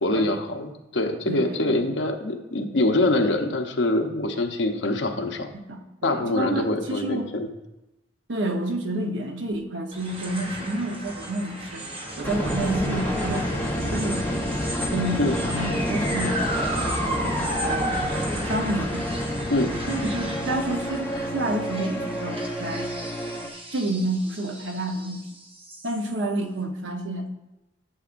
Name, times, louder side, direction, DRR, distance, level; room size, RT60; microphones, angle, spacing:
voice 1, 0.0-5.5 6.0-7.5 15.2-15.4 19.5-19.7, left 2 dB, 70° left, 4 dB, 0.9 m, -24 dB
voice 2, 1.3-1.9 5.7-7.3 8.3-11.9 12.2-14.6 14.9-18.1 18.4-19.1 19.9-22.9 23.7-25.2 25.8-27.3, right 1 dB, 90° right, 4 dB, 1.0 m, -29 dB
sound 1, 9.9-26.4, right 1 dB, 30° right, 1.0 m, -34 dB
sound 2, 12.2-23.5, equal, 10° left, 1.0 m, -29 dB
11.5 x 7.0 x 2.6 m, 0.97 s
head